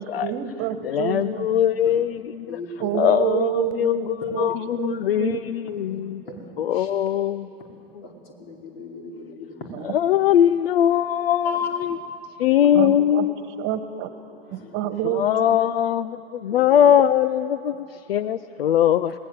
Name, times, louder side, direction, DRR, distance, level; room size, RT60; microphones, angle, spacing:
voice 1, 0.0-1.5 2.8-4.5 4.8-5.4 9.7-9.8 12.7-13.2 13.6-14.1 14.5-15.6, right 10 dB, 40° right, 11 dB, 1.5 m, -28 dB
voice 2, 0.8-2.6 2.9-6.2 6.6-7.5 9.8-12.0 12.4-13.6 15.0-19.1, left 10 dB, 65° left, 14 dB, 0.6 m, -21 dB
voice 3, 2.5-3.0 5.8-6.9 8.0-9.7 11.4-12.0 12.5-12.8 14.5-14.9 16.5-16.8, left 5 dB, 45° left, 0 dB, 5.0 m, -35 dB
26.5 x 19.5 x 8.1 m, 2.8 s
figure-of-eight pair, 90°, 31 cm